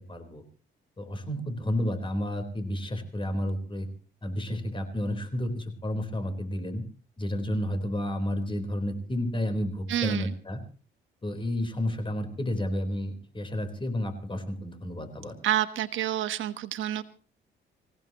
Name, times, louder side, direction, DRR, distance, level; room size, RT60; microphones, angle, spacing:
voice 1, 0.1-0.4 1.0-3.9 4.2-6.8 7.2-10.6 11.2-15.4, left 1 dB, 25° left, 7 dB, 4.1 m, -31 dB
voice 2, 9.9-10.3 15.4-17.0, right 12 dB, 75° right, 10 dB, 1.3 m, -28 dB
26.0 x 16.5 x 3.0 m, 0.38 s
cardioid pair, 90°, 20 cm